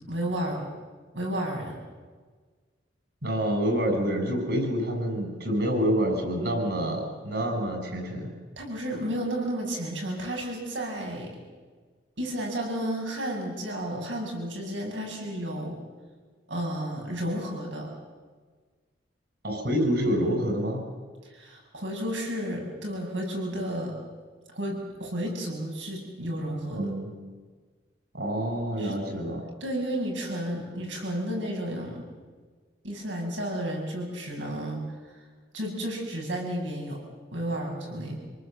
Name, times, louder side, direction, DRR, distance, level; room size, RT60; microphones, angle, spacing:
voice 1, 0.1-0.7 1.1-1.8 8.6-11.3 12.2-15.8 16.5-17.9 21.3-24.0 24.5-26.9 28.8-29.0 29.6-32.0 32.8-34.8 35.5-37.0 37.3-38.2, right 1 dB, 85° right, 0 dB, 7.4 m, -32 dB
voice 2, 3.2-8.3 19.4-20.8 26.7-27.1 28.1-29.4, equal, 60° right, 3 dB, 7.2 m, -27 dB
27.5 x 19.0 x 7.7 m, 1.5 s
head